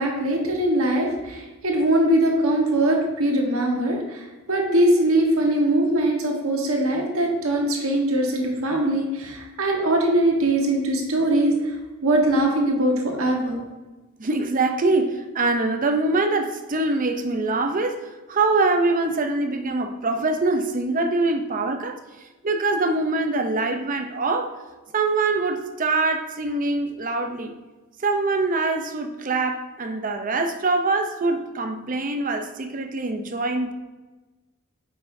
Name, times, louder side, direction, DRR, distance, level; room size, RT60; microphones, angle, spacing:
voice 1, 0.0-11.8 12.0-13.6, right 1 dB, 80° right, 1 dB, 1.3 m, -21 dB
voice 2, 14.2-22.0 22.4-24.5 24.9-27.5 28.0-33.7, right 3 dB, 40° right, 6 dB, 0.6 m, -24 dB
9.2 x 5.4 x 2.7 m, 1.2 s
head